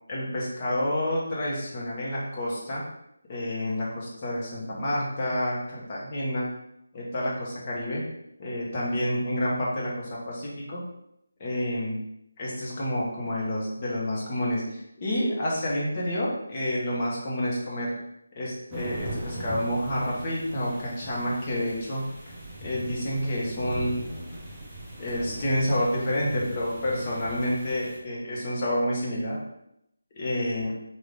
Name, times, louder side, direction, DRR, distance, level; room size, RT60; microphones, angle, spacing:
voice 1, 0.1-2.8 3.3-6.5 6.9-8.0 8.4-10.8 11.4-12.0 12.4-17.9 18.4-22.1 22.6-24.0 25.0-29.4 30.1-30.7, left 1 dB, 30° left, -5 dB, 1.0 m, -29 dB
sound 1, 18.7-28.0, right 1 dB, 5° right, 0.8 m, -39 dB
3.6 x 2.6 x 3.4 m, 0.79 s
figure-of-eight pair, 160°, 0 cm